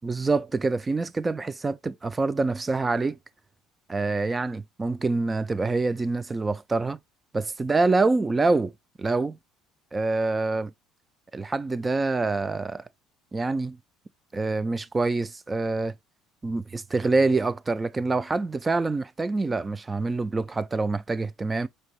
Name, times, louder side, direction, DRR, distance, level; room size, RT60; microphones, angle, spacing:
voice 1, 0.0-3.2 3.9-7.0 7.3-8.7 9.0-9.4 9.9-10.7 11.3-12.8 13.3-13.8 14.3-15.9 16.4-21.7, right 3 dB, 20° right, 0.3 m, -26 dB
4.6 x 2.7 x 3.0 m
cardioid pair, 115°, 0 cm